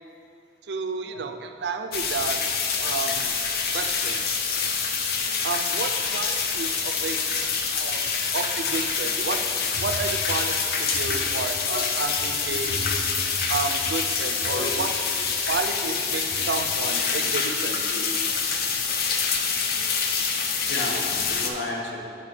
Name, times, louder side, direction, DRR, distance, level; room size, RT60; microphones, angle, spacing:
voice 1, 0.7-2.4 2.8-3.3 3.7-4.3 5.4-7.2 7.7-9.4 9.8-12.9 13.5-14.9 15.5-17.8, right 4 dB, 75° right, 6 dB, 0.5 m, -31 dB
sound 1, 1.9-21.5, left 5 dB, 60° left, 0.6 m, -26 dB
voice 2, 14.4-14.9 16.3-16.4 17.1-17.5 17.9-18.1 20.6-21.0 21.3-22.0, left 1 dB, 90° left, -1 dB, 1.1 m, -34 dB
6.7 x 5.1 x 4.9 m, 2.6 s
head